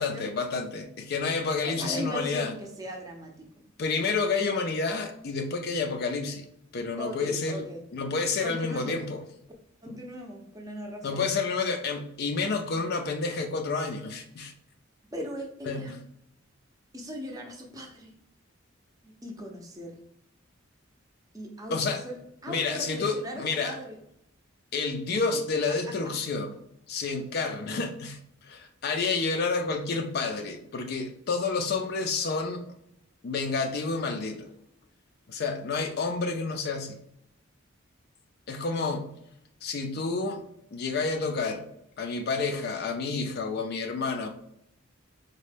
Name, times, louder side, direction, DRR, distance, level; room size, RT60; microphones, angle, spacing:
voice 1, 0.0-2.5 3.8-6.5 6.7-7.7 7.9-9.2 11.0-14.5 15.7-16.0 21.7-22.0 22.5-23.8 24.7-26.6 26.9-32.6 33.2-34.5 35.3-37.0 38.5-39.1 39.6-40.4 40.7-41.6 42.0-44.3, left 4 dB, 50° left, 5 dB, 0.4 m, -29 dB
voice 2, 1.6-3.5 7.0-7.8 8.4-8.9 9.8-11.2 15.1-16.0 16.9-18.1 19.0-19.9 21.3-21.8 22.0-22.1 22.4-24.0 25.3-25.6, equal, 15° right, 1 dB, 0.5 m, -38 dB
4.1 x 2.2 x 3.3 m, 0.77 s
head